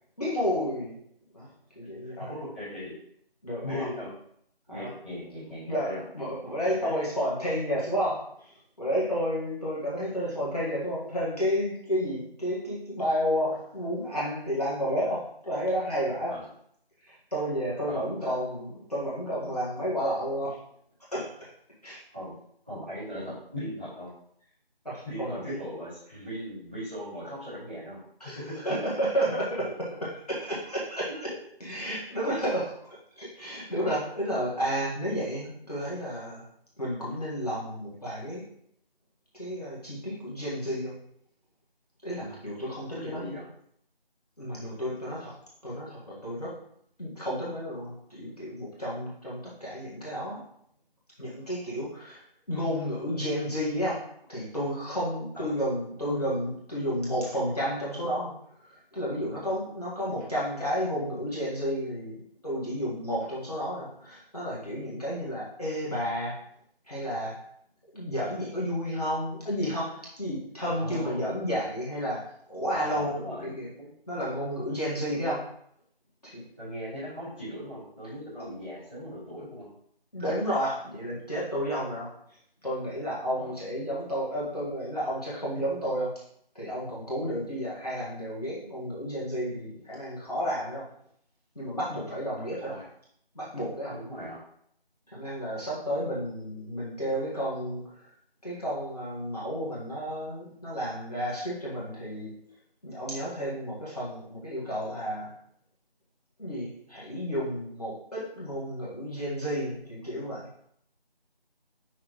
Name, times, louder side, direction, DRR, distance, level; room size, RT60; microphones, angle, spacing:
voice 1, 0.2-1.0 1.3-1.5 1.8-2.3 3.4-3.9 4.7-4.9 5.7-16.4 17.0-20.6 21.1-21.5 21.8-22.0 24.9-25.6 28.2-28.4 28.6-29.7 30.0-31.3 31.6-32.9 33.2-36.4 36.8-38.4 39.3-40.9 42.0-43.4 44.4-45.3 45.6-46.6 47.0-50.4 51.2-52.2 52.5-54.0 54.3-58.3 58.6-66.4 66.9-67.4 67.9-73.2 73.4-73.7 74.1-75.4 76.2-76.4 78.4-78.5 80.1-86.1 86.6-90.9 91.6-92.7 93.3-94.0 95.1-98.1 98.4-102.3 102.8-105.3 106.4-110.5, equal, 40° left, -7 dB, 1.7 m, -31 dB
voice 2, 2.5-2.9 3.6-4.1 4.7-6.0 6.6-6.9 16.3-16.4 17.9-18.0 22.1-22.3 22.6-24.1 25.0-28.0 28.3-28.6 42.9-43.4 55.3-55.5 70.6-71.2 72.7-73.5 73.8-73.9 75.1-75.3 76.6-79.6 83.3-83.5 92.6-92.8 93.9-94.4, equal, 10° right, -16 dB, 2.3 m, -38 dB
6.2 x 5.5 x 3.1 m, 0.68 s
figure-of-eight pair, 180°, 30 cm